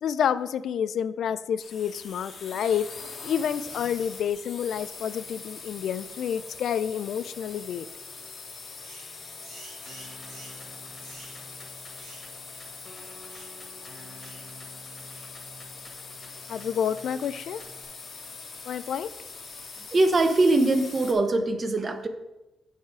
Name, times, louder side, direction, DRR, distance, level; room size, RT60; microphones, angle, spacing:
voice 1, 0.0-2.9 3.2-7.9 16.5-17.6 18.7-19.1, left 8 dB, 65° left, 15 dB, 0.3 m, -29 dB
sound 1, 1.6-21.1, left 4 dB, 45° left, 1.3 m, -43 dB
sound 2, 8.8-9.1 9.4-10.6 11.0-11.4 11.9-12.3 12.5-12.7 13.3-13.6 14.2-14.5 15.1-15.3, right 2 dB, 85° right, 2.9 m, -49 dB
sound 3, 9.9-17.9, left 1 dB, 25° left, 1.8 m, -50 dB
voice 2, 19.9-22.1, right 2 dB, 35° right, 8 dB, 0.8 m, -22 dB
8.1 x 4.9 x 4.8 m, 0.98 s
cardioid pair, 115°, 0 cm